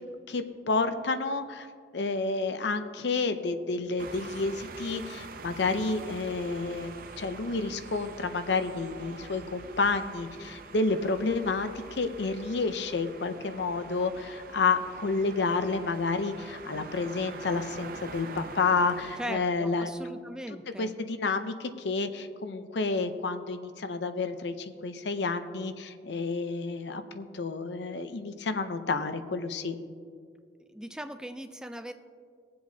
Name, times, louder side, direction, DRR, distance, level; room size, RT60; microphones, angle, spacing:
voice 1, 0.3-1.7 1.9-19.9 20.8-29.7, left 3 dB, 75° left, 9 dB, 0.6 m, -30 dB
sound 1, 4.0-19.3, right 4 dB, 50° right, 0.6 m, -45 dB
voice 2, 19.2-20.9 30.7-31.9, equal, 5° right, 9 dB, 0.3 m, -39 dB
20.5 x 7.7 x 2.7 m, 2.1 s
head